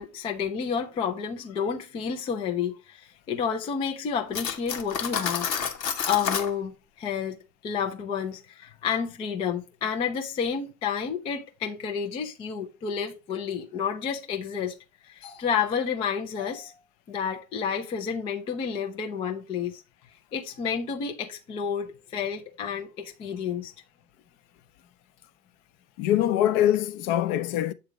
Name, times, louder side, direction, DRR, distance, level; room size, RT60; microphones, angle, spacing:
voice 1, 0.0-5.5 6.0-7.4 7.6-14.7 15.0-16.7 17.1-19.8 20.3-23.7, left 7 dB, 15° left, 0.3 m, -30 dB
Cutlery silverware, 4.3-6.5, left 7 dB, 85° left, 1.1 m, -29 dB
voice 2, 26.0-27.7, left 12 dB, 40° left, 0.7 m, -23 dB
7.9 x 3.3 x 4.9 m
hypercardioid pair, 95°, 49 cm